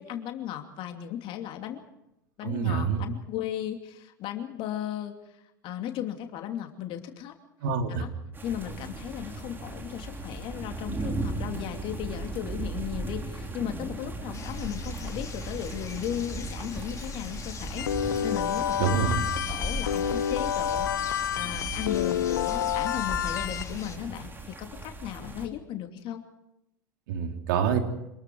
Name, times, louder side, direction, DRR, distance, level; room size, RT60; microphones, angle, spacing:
voice 1, 0.0-1.8 2.4-5.1 5.6-7.3 7.9-8.1 8.4-19.0 19.5-26.2, left 11 dB, 55° left, 5 dB, 2.8 m, -36 dB
voice 2, 2.4-3.0 7.6-8.0 18.8-19.2 27.1-27.8, right 7 dB, 70° right, 4 dB, 3.2 m, -26 dB
sound 1, 8.3-25.5, right 2 dB, 20° right, 3.8 m, -37 dB
sound 2, 14.3-24.0, left 4 dB, 30° left, 3.3 m, -40 dB
sound 3, 17.8-23.6, left 9 dB, 85° left, 0.9 m, -29 dB
27.0 x 21.0 x 4.8 m, 0.87 s
hypercardioid pair, 80°, 11 cm